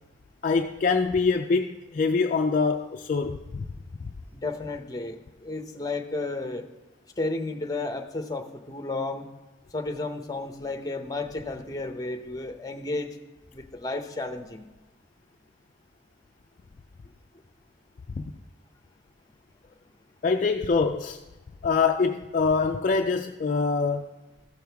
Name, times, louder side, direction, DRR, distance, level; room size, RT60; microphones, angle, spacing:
voice 1, 0.4-3.7 18.2-18.3 20.2-21.2 21.6-24.1, left 4 dB, 40° left, 0.3 m, -24 dB
voice 2, 4.3-6.7 7.2-9.3 9.7-13.2 13.5-14.7, left 2 dB, 20° left, 0.7 m, -32 dB
14.5 x 6.3 x 3.4 m
head